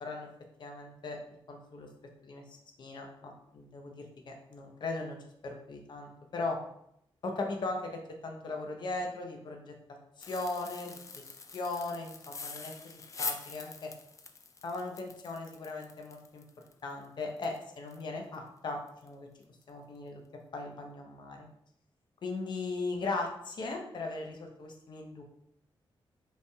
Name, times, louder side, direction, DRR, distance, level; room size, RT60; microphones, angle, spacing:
voice 1, 0.6-1.2 1.5-1.9 2.2-5.2 5.4-6.6 7.2-9.7 10.2-11.2 11.5-13.9 14.6-16.4 16.8-19.3 19.7-20.2 20.5-21.5 22.2-25.2, left 3 dB, 55° left, 2 dB, 0.7 m, -38 dB
sound 1, 10.2-18.0 18.3-18.4 18.9-19.1 19.4-19.6, left 4 dB, 35° left, 0.3 m, -44 dB
5.3 x 3.3 x 2.3 m, 0.73 s
wide cardioid pair, 145°, 9 cm